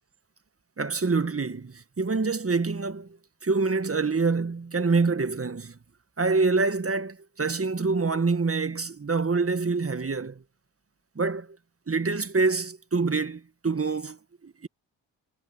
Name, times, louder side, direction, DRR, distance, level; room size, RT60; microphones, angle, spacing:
voice 1, 0.8-3.2 3.4-5.8 6.2-10.4 11.2-11.5 11.9-14.7, right 4 dB, 30° right, 1.8 m, -26 dB
supercardioid pair, 45°, 48 cm